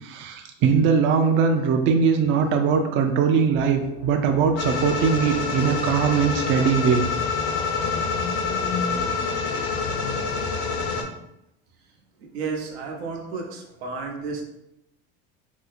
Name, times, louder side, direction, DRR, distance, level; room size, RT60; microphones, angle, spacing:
voice 1, 0.0-7.1, right 6 dB, 40° right, 5 dB, 0.4 m, -21 dB
sound 1, 3.5-11.2, left 5 dB, 50° left, 0.4 m, -37 dB
sound 2, 4.6-11.0, left 4 dB, 85° left, 0.7 m, -27 dB
voice 2, 12.2-14.4, right 4 dB, 85° right, 1 dB, 0.8 m, -32 dB
2.7 x 2.1 x 4.0 m, 0.82 s
supercardioid pair, 105°, 32 cm